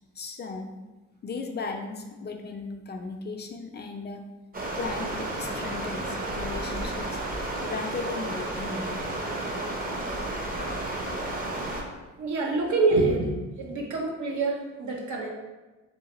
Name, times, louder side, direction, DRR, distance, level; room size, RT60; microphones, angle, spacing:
voice 1, 0.2-0.7 1.2-4.3 4.7-7.2 7.6-9.1, left 4 dB, 35° left, 4 dB, 0.4 m, -36 dB
Stream, 4.5-11.8, right 1 dB, 30° right, 0.7 m, -32 dB
voice 2, 12.2-15.3, right 3 dB, 70° right, 1 dB, 0.9 m, -26 dB
3.9 x 3.2 x 2.9 m, 1.2 s
cardioid pair, 90°, 30 cm